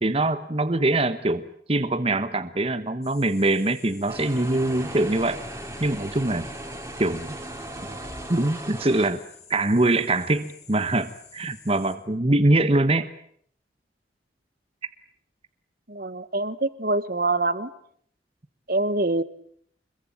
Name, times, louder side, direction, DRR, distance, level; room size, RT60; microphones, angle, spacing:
voice 1, 0.0-5.4 5.8-6.5 7.0-7.4 8.3-9.2 9.5-13.1, right 2 dB, 35° right, 10 dB, 1.2 m, -23 dB
sound 1, 3.0-12.0, left 6 dB, 35° left, 6.8 m, -50 dB
sound 2, 4.1-9.1, right 1 dB, 15° right, 3.6 m, -37 dB
voice 2, 15.9-17.7 18.7-19.2, right 2 dB, 55° right, 13 dB, 1.6 m, -25 dB
26.0 x 22.0 x 8.9 m, 0.65 s
head